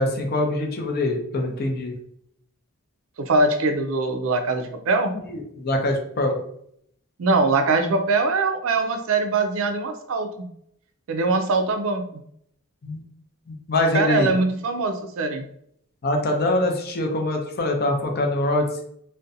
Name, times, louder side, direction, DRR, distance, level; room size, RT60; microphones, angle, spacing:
voice 1, 0.0-1.9 5.3-6.3 12.8-13.0 13.5-14.3 16.0-18.8, left 1 dB, 45° left, 3 dB, 0.5 m, -24 dB
voice 2, 3.3-5.1 7.2-10.5 11.1-12.2 13.9-15.4, right 3 dB, 70° right, 6 dB, 0.4 m, -22 dB
2.5 x 2.1 x 2.6 m, 0.70 s
head